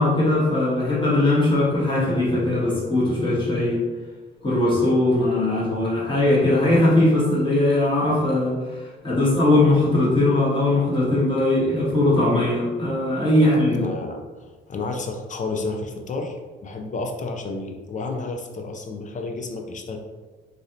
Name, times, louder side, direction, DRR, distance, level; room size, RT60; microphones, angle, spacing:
voice 1, 0.0-3.8 4.4-13.8, left 2 dB, 25° left, -7 dB, 1.4 m, -20 dB
voice 2, 13.4-20.0, left 3 dB, 40° left, 3 dB, 0.5 m, -31 dB
3.2 x 2.6 x 2.7 m, 1.3 s
cardioid pair, 90°, 20 cm